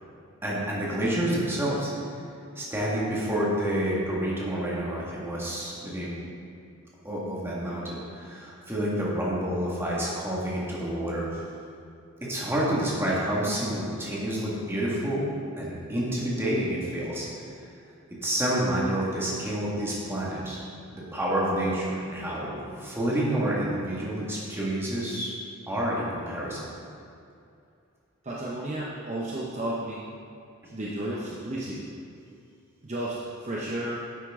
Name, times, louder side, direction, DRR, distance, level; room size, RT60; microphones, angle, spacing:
voice 1, 0.4-1.9 2.6-6.2 7.0-11.3 12.2-15.3 15.6-17.3 18.2-20.6 20.9-25.3 25.7-26.6, right 1 dB, 10° right, -6 dB, 1.8 m, -28 dB
voice 2, 28.2-30.1 30.7-31.9 32.8-34.1, right 1 dB, 35° right, -5 dB, 0.8 m, -33 dB
10.0 x 8.1 x 3.7 m, 2.5 s
head